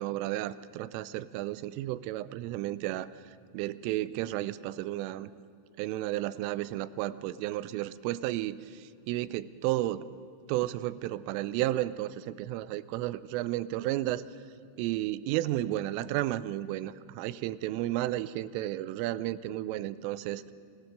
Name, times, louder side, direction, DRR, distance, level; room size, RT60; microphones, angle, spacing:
voice 1, 0.0-3.1 3.5-5.3 5.8-10.1 10.5-14.2 14.8-20.4, right 15 dB, 85° right, 16 dB, 3.2 m, -32 dB
25.0 x 18.0 x 6.6 m, 2.5 s
omnidirectional pair, 5.7 m